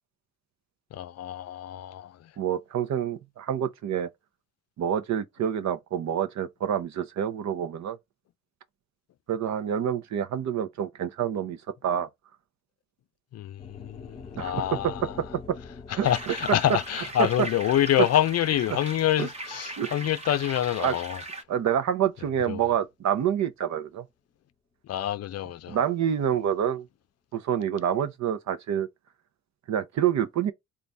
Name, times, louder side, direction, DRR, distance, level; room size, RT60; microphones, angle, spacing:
voice 1, 0.9-2.3 13.3-15.2 15.9-21.2 22.5-22.7 24.9-25.8, left 12 dB, 55° left, 0.5 m, -27 dB
voice 2, 2.4-4.1 4.8-8.0 9.3-12.1 14.4-14.6 16.0-16.3 17.2-17.3 19.2-19.3 19.8-19.9 20.8-20.9 21.5-24.0 25.7-26.9 27.3-28.9 29.7-30.5, right 9 dB, 65° right, 0.8 m, -27 dB
sound 1, 13.6-21.8, left 4 dB, 20° left, 1.0 m, -46 dB
sound 2, 16.0-21.4, right 1 dB, 20° right, 0.9 m, -39 dB
3.9 x 2.5 x 3.4 m
cardioid pair, 90°, 30 cm